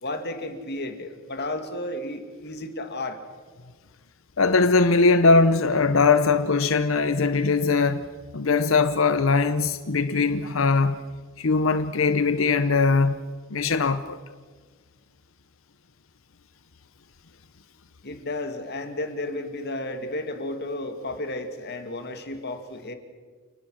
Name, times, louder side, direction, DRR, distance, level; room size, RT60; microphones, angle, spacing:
voice 1, 0.0-3.2 18.0-22.9, left 1 dB, 55° left, 2.3 m, -33 dB
voice 2, 4.4-8.0 8.3-11.0 11.4-13.2 13.5-14.2, left 4 dB, 70° left, 0.8 m, -20 dB
29.0 x 19.0 x 6.4 m
head